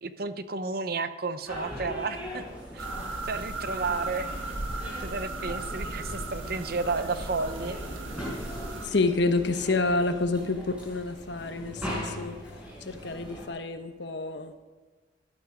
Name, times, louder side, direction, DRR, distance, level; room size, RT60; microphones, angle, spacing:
voice 1, 0.0-2.4 2.7-2.9 3.2-4.4 5.0-7.8, right 4 dB, 50° right, 11 dB, 0.7 m, -32 dB
sound 1, 1.5-13.5, equal, 5° right, 5.1 m, -40 dB
sound 2, 2.8-8.9, right 2 dB, 80° right, 1.6 m, -36 dB
voice 2, 8.8-12.4 12.8-14.5, left 3 dB, 60° left, 8 dB, 1.1 m, -28 dB
14.5 x 12.0 x 5.1 m, 1.3 s
head